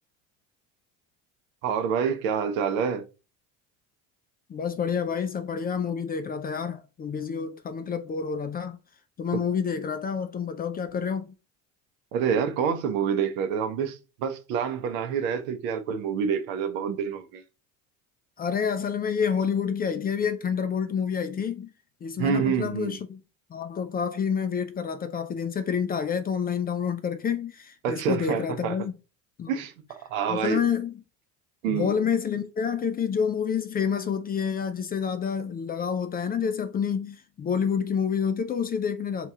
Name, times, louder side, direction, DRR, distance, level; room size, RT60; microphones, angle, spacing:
voice 1, 1.6-3.1 12.1-17.4 22.2-23.0 27.8-28.7 29.5-30.6 31.6-31.9, right 7 dB, 75° right, 0.8 m, -27 dB
voice 2, 4.5-8.8 9.2-11.3 18.4-21.7 22.0-23.2 23.5-28.9 29.4-29.5 30.3-31.0 31.7-39.3, left 7 dB, 25° left, 0.4 m, -28 dB
3.0 x 2.9 x 3.5 m
hypercardioid pair, 90°, 41 cm